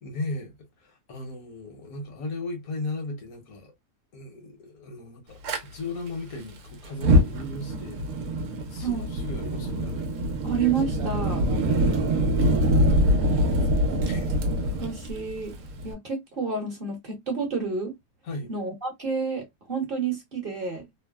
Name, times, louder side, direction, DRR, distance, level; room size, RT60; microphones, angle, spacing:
voice 1, 0.0-3.7 4.1-8.1 8.7-10.1 13.2-13.5 14.0-14.4 18.2-18.5, left 2 dB, 80° left, 1.4 m, -36 dB
Fire, 5.4-5.6 6.9-15.9, equal, 90° right, 1.1 m, -24 dB
voice 2, 10.4-11.4 14.8-15.5 15.8-17.9 18.5-20.9, right 5 dB, 45° right, 1.1 m, -29 dB
3.2 x 2.1 x 2.2 m
omnidirectional pair, 1.5 m